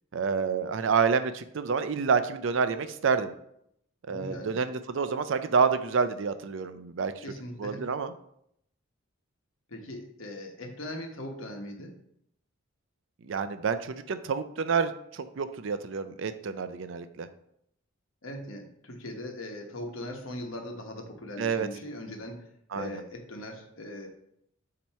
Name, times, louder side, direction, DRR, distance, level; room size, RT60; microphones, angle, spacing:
voice 1, 0.1-3.3 4.1-7.2 7.6-8.1 13.3-17.3 21.4-21.7 22.7-22.9, right 5 dB, 60° right, 11 dB, 0.4 m, -28 dB
voice 2, 4.1-4.6 7.2-7.9 9.7-12.0 18.2-22.4 22.7-24.1, left 1 dB, 70° left, 3 dB, 1.1 m, -40 dB
7.2 x 2.9 x 4.5 m, 0.73 s
head